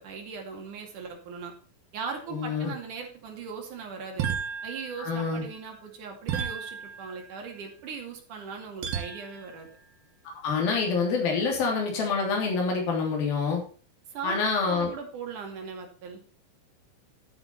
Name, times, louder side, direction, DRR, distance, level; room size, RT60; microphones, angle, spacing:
voice 1, 0.0-1.5 1.9-4.3 4.6-9.7 14.1-16.2, right 5 dB, 55° right, 2 dB, 3.8 m, -39 dB
voice 2, 2.3-2.7 5.0-5.4 10.4-13.6 14.2-14.9, left 4 dB, 70° left, 0 dB, 4.9 m, -26 dB
sound 1, 4.2-5.5 6.3-7.5 8.8-9.6, right 7 dB, 85° right, 3.6 m, -34 dB
12.0 x 8.7 x 4.3 m, 0.39 s
omnidirectional pair, 4.3 m